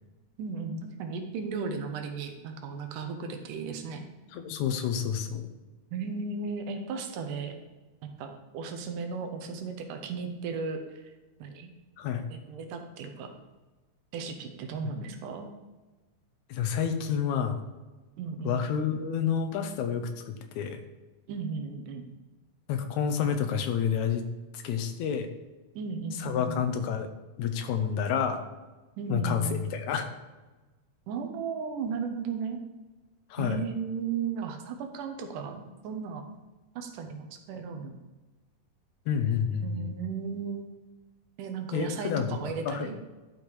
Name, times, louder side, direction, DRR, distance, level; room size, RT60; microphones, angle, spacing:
voice 1, 0.4-4.1 5.9-7.5 8.0-11.1 11.4-11.7 12.3-13.3 14.1-15.5 18.2-18.6 21.3-22.1 25.8-26.7 29.0-29.7 31.1-32.6 33.4-36.2 36.8-37.9 39.6-40.8 41.4-43.0, right 5 dB, 85° right, 5 dB, 2.5 m, -35 dB
voice 2, 4.3-5.5 12.0-12.2 16.5-17.6 18.4-20.8 22.7-24.2 24.5-25.3 26.2-27.1 27.4-28.4 29.1-30.1 33.3-33.6 39.1-39.9 41.7-42.9, left 7 dB, 75° left, 7 dB, 2.0 m, -29 dB
12.0 x 5.9 x 3.2 m, 1.2 s
omnidirectional pair, 3.6 m